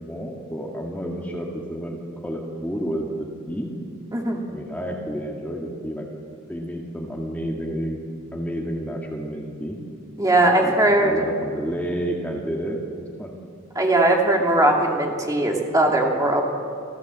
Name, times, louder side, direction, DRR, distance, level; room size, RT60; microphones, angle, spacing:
voice 1, 0.0-3.7 4.5-6.1 6.5-8.0 8.3-9.8 10.4-10.7 11.0-13.3, equal, 10° left, -1 dB, 2.1 m, -30 dB
voice 2, 4.1-4.4 10.2-11.2 13.8-16.4, right 1 dB, 15° right, 0 dB, 2.5 m, -19 dB
28.0 x 15.5 x 7.6 m, 2.3 s
head